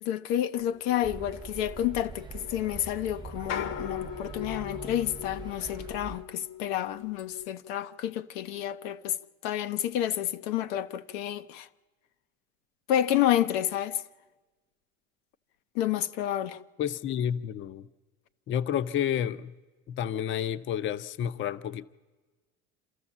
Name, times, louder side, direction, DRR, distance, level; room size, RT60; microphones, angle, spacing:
voice 1, 0.0-9.2 9.4-11.7 12.9-14.0 15.7-16.6, left 11 dB, 85° left, 0.8 m, -29 dB
sound 1, 0.6-7.5, left 10 dB, 60° left, 1.1 m, -41 dB
sound 2, 1.0-6.2, right 4 dB, 15° right, 0.8 m, -43 dB
voice 2, 16.8-17.9 18.5-19.5 19.9-21.9, left 9 dB, 40° left, 0.6 m, -30 dB
27.0 x 13.5 x 7.3 m
supercardioid pair, 105°, 30 cm